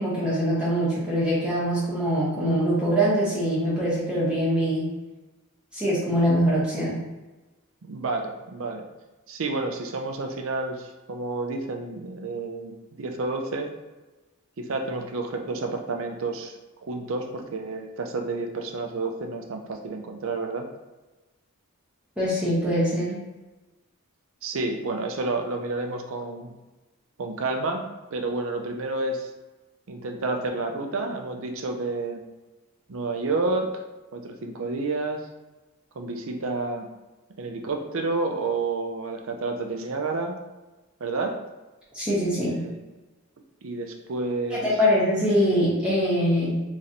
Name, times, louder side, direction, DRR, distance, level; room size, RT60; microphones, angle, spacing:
voice 1, 0.0-4.9 5.7-7.0 22.2-23.2 41.9-42.6 44.5-46.6, equal, 5° right, -9 dB, 1.0 m, -23 dB
voice 2, 7.8-8.8 9.3-13.7 14.6-16.5 16.8-20.7 24.4-26.5 27.2-27.9 28.1-29.3 29.9-32.2 32.9-33.8 34.1-35.2 36.0-36.9 37.4-40.4 41.0-41.4 42.5-42.8 43.6-44.7, right 3 dB, 65° right, 4 dB, 0.5 m, -30 dB
4.2 x 3.0 x 2.6 m, 1.1 s
head